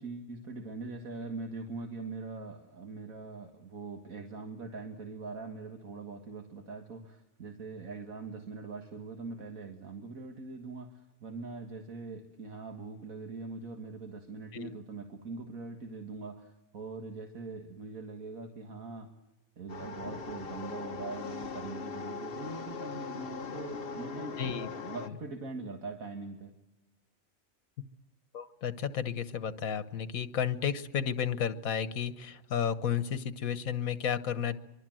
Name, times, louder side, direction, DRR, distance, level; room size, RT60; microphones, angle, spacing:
voice 1, 0.0-19.1 19.6-26.5, right 3 dB, 80° right, 3 dB, 2.2 m, -42 dB
sound 1, 19.7-25.1, left 5 dB, 45° left, 1.3 m, -40 dB
voice 2, 24.4-24.7 28.3-34.6, left 8 dB, 85° left, 13 dB, 1.5 m, -32 dB
24.0 x 24.0 x 7.7 m, 1.0 s
omnidirectional pair, 1.4 m